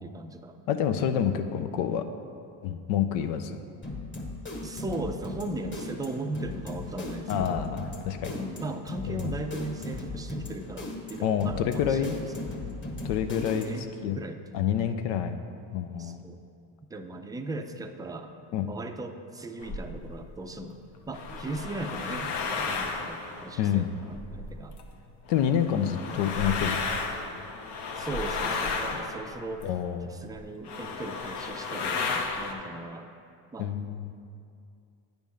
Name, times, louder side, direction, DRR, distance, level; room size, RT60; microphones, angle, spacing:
voice 1, 0.0-0.6 4.6-7.6 8.3-12.6 13.4-14.4 16.0-16.4 16.9-20.8 21.1-24.8 27.9-29.7 30.1-33.1 33.5-33.7, right 2 dB, 10° right, 6 dB, 0.4 m, -38 dB
voice 2, 0.7-2.0 2.6-3.6 7.3-8.4 9.1-9.2 11.2-12.2 13.0-13.7 14.0-14.2 14.5-15.4 15.7-16.2 18.5-18.7 23.6-23.9 25.3-26.8 29.6-30.1 33.6-34.1, left 9 dB, 85° left, 8 dB, 0.6 m, -28 dB
sound 1, 3.8-13.9, left 2 dB, 25° left, 1.3 m, -38 dB
sound 2, 19.6-20.1 20.9-24.9 25.3-29.9 30.4-30.5 30.6-32.5, left 4 dB, 60° left, 0.9 m, -33 dB
9.0 x 3.5 x 6.3 m, 2.5 s
supercardioid pair, 85°, 45 cm